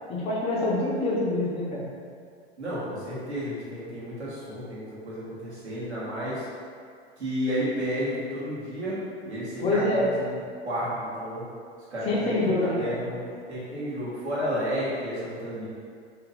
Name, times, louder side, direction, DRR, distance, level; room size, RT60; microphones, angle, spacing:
voice 1, 0.1-1.8 9.6-10.1 12.0-13.0, left 2 dB, 20° left, -5 dB, 0.4 m, -26 dB
voice 2, 2.6-6.4 7.2-9.0 9.2-10.4 10.6-11.5 11.9-13.2 13.5-15.7, equal, 75° right, -9 dB, 1.4 m, -32 dB
3.0 x 2.8 x 3.8 m, 2.2 s
figure-of-eight pair, 95°, 33 cm